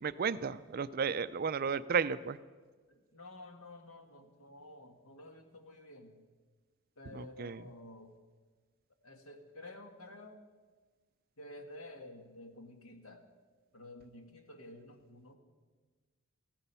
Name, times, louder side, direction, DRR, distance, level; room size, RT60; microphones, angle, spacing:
voice 1, 0.0-2.4 7.1-7.6, right 6 dB, 40° right, 15 dB, 0.4 m, -33 dB
voice 2, 2.9-6.2 7.0-8.1 9.0-10.4 11.4-13.2 13.7-15.4, left 2 dB, 75° left, 5 dB, 1.7 m, -51 dB
15.0 x 14.0 x 5.6 m, 1.4 s
head